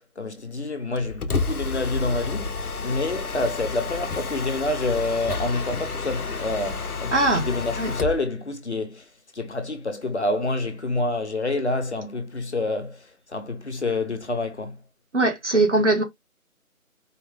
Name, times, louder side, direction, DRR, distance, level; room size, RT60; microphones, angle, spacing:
voice 1, 0.0-14.8, left 2 dB, 50° left, 1.1 m, -28 dB
Mechanisms, 1.0-8.2, left 4 dB, 90° left, 0.9 m, -30 dB
voice 2, 7.1-7.5 7.8-7.9 15.1-16.0, right 2 dB, 55° right, 1.3 m, -20 dB
4.6 x 2.3 x 3.7 m
figure-of-eight pair, 175°, 43 cm